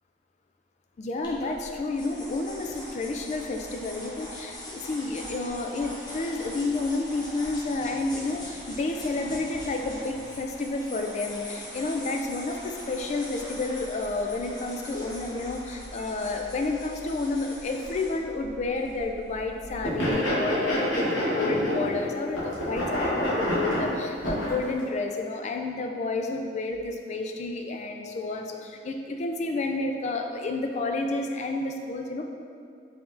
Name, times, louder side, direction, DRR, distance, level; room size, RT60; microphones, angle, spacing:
voice 1, 1.0-32.2, left 3 dB, 40° left, 3 dB, 0.3 m, -30 dB
sound 1, 1.2-20.1, left 1 dB, 25° left, 0.8 m, -42 dB
sound 2, 19.8-22.1 22.3-24.6, equal, 90° left, 1.3 m, -27 dB
4.9 x 3.5 x 2.5 m, 2.3 s
head